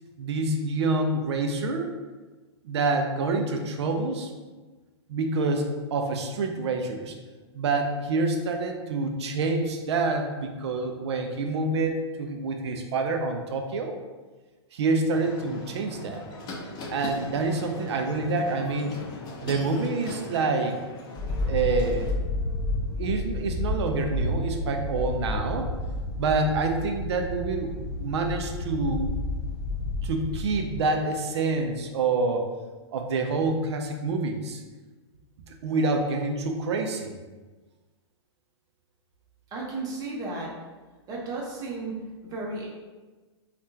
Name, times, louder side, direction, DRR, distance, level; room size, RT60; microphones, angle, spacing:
voice 1, 0.2-1.9 2.6-4.3 5.1-5.6 5.9-7.1 7.5-13.9 14.7-16.2 16.9-19.0 19.4-20.7 21.4-22.1 23.0-25.7 26.2-29.1 30.0-32.5 32.9-34.6 35.6-37.2, right 3 dB, 70° right, 4 dB, 0.5 m, -27 dB
sound 1, 15.1-22.1, left 2 dB, 30° left, 0.6 m, -40 dB
sound 2, 21.2-30.8, left 2 dB, ahead, 1.2 m, -30 dB
voice 2, 39.5-40.5 41.1-42.0 42.3-42.7, right 3 dB, 25° right, -4 dB, 0.9 m, -33 dB
3.5 x 2.4 x 2.7 m, 1.3 s
hypercardioid pair, 120°, 15 cm